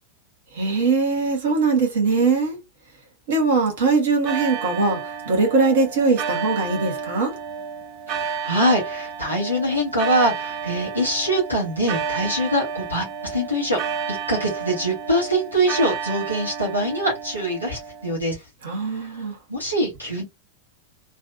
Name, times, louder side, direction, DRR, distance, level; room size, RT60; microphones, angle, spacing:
voice 1, 0.5-2.6 3.3-7.3 18.6-19.4, right 4 dB, 60° right, 1.5 m, -21 dB
sound 1, 4.3-18.1, right 6 dB, 40° right, 0.5 m, -31 dB
voice 2, 8.1-13.8 14.1-18.4 19.0-19.1 19.5-20.2, right 1 dB, 90° right, 1.3 m, -23 dB
3.2 x 2.6 x 2.5 m
figure-of-eight pair, 90°, 0 cm